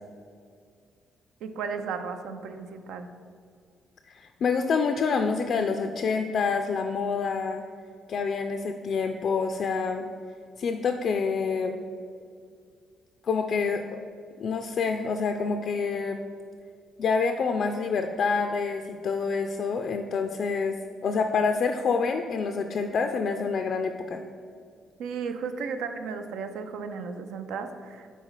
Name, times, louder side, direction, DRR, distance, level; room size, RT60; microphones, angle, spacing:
voice 1, 1.4-3.1 25.0-28.1, right 5 dB, 85° right, 8 dB, 0.4 m, -34 dB
voice 2, 4.1-7.6 8.1-10.1 10.6-11.8 13.2-13.8 14.4-16.2 17.0-20.8 21.0-24.2, left 5 dB, 60° left, 5 dB, 0.3 m, -27 dB
4.6 x 4.0 x 5.5 m, 2.2 s
cardioid pair, 90°, 0 cm